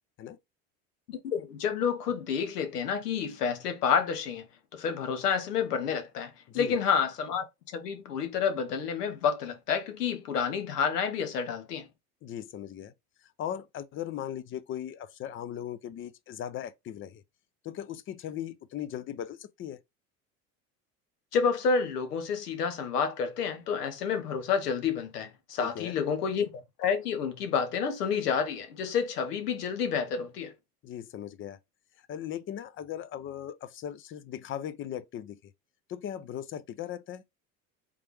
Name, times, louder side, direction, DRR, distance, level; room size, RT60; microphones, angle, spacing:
voice 1, 1.1-4.5 4.7-7.4 7.7-11.9 21.3-30.5, left 6 dB, 85° left, 1.0 m, -29 dB
voice 2, 12.2-12.9 13.4-17.2 17.6-19.8 25.6-26.0 30.8-31.6 32.1-35.5 35.9-37.2, left 10 dB, 30° left, 0.4 m, -38 dB
3.5 x 3.3 x 3.1 m
hypercardioid pair, 80°, 46 cm